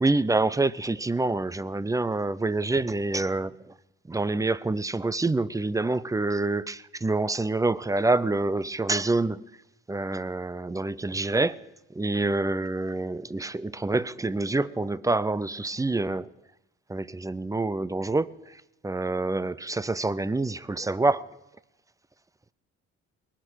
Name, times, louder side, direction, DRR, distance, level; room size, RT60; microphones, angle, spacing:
voice 1, 0.0-3.5 4.1-9.4 9.9-11.6 11.9-16.3 16.9-18.3 18.8-21.3, right 2 dB, 10° right, 0.5 m, -26 dB
20.0 x 10.0 x 6.3 m
cardioid pair, 90°, 30 cm